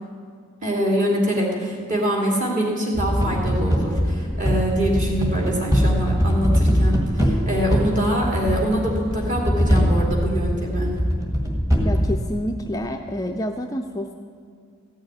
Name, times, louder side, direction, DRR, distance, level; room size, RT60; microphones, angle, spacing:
voice 1, 0.6-10.9, equal, 35° right, -2 dB, 2.5 m, -24 dB
sound 1, 2.9-12.2, equal, 15° right, 1.7 m, -21 dB
voice 2, 11.8-14.1, equal, 15° left, 3 dB, 0.4 m, -28 dB
15.0 x 6.4 x 9.5 m, 2.1 s
head